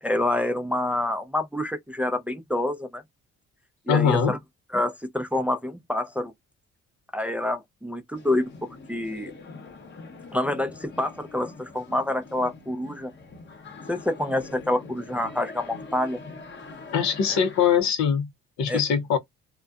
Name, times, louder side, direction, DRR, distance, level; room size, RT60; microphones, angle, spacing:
voice 1, 0.0-3.0 3.9-4.4 4.7-6.3 7.1-8.5 8.9-9.3 10.3-13.1 13.9-16.2 17.3-17.4 18.7-18.8, left 1 dB, 5° right, 0.4 m, -27 dB
voice 2, 3.9-4.3 16.9-18.3 18.6-19.2, left 7 dB, 70° left, 0.6 m, -22 dB
sound 1, 8.1-17.8, left 3 dB, 40° left, 0.8 m, -44 dB
2.5 x 2.1 x 2.3 m
cardioid pair, 90°, 30 cm